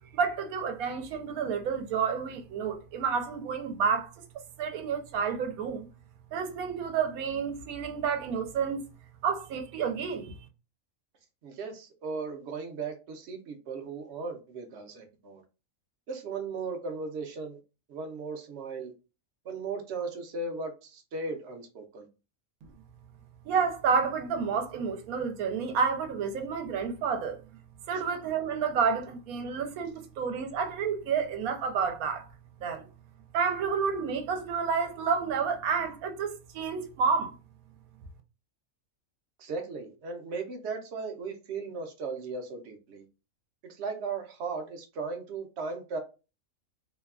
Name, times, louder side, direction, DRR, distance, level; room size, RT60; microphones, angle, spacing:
voice 1, 0.1-4.2 4.6-5.9 6.3-8.8 9.2-10.4 23.4-27.4 27.9-32.3 32.6-32.9 33.3-37.3, right 6 dB, 90° right, 1.0 m, -30 dB
voice 2, 11.4-15.4 16.1-17.6 17.9-18.9 19.4-22.1 39.4-43.0 43.6-46.0, right 4 dB, 65° right, 0.7 m, -37 dB
2.8 x 2.2 x 2.3 m
omnidirectional pair, 1.5 m